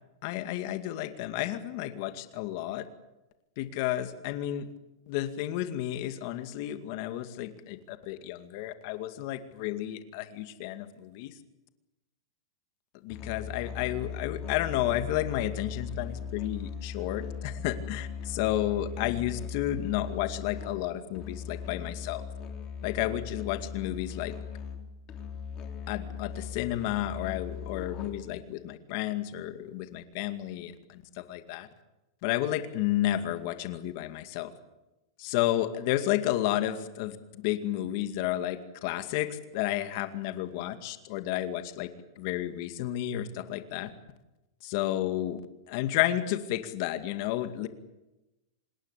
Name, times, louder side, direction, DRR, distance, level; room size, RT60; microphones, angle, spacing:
voice 1, 0.2-2.9 3.6-4.7 5.1-11.4 13.0-22.2 22.8-24.4 25.9-31.7 32.2-34.5 35.2-41.9 42.2-43.9 44.6-45.4 45.7-47.7, left 13 dB, 45° left, 9 dB, 2.2 m, -32 dB
Musical instrument, 13.1-28.4, left 6 dB, 25° left, 3.5 m, -39 dB
26.5 x 21.0 x 8.3 m, 0.98 s
supercardioid pair, 160°, 2 cm